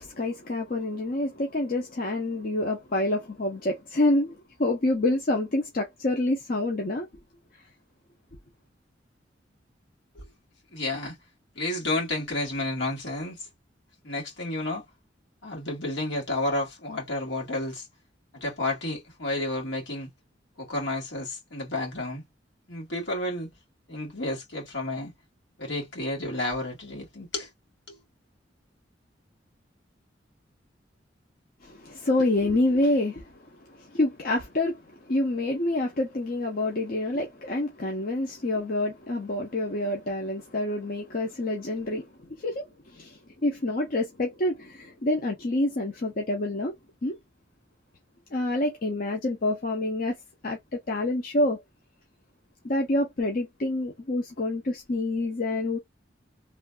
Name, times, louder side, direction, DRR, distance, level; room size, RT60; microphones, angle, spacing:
voice 1, 0.0-7.1 31.6-33.4 33.7-42.1 42.4-46.7 47.0-47.2 48.3-50.2 50.4-51.6 52.6-55.8, left 2 dB, 50° left, 0.7 m, -27 dB
voice 2, 10.7-11.2 11.6-13.5 14.0-14.9 15.4-17.9 18.3-20.1 20.6-22.2 22.7-23.5 23.9-25.1 25.6-27.5 27.9-28.0, left 2 dB, 75° left, 2.0 m, -31 dB
3.2 x 2.3 x 2.4 m
head